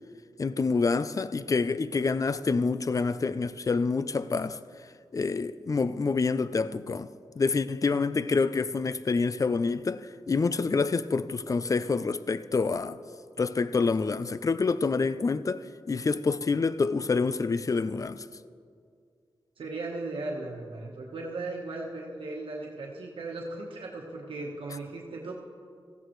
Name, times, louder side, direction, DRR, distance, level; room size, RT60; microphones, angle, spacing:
voice 1, 0.4-4.6 5.1-7.1 7.4-13.0 13.4-18.2, left 4 dB, 40° left, 0.4 m, -27 dB
voice 2, 19.6-25.3, right 2 dB, 90° right, 1.2 m, -37 dB
17.0 x 14.5 x 3.1 m
wide cardioid pair, 80°, 9 cm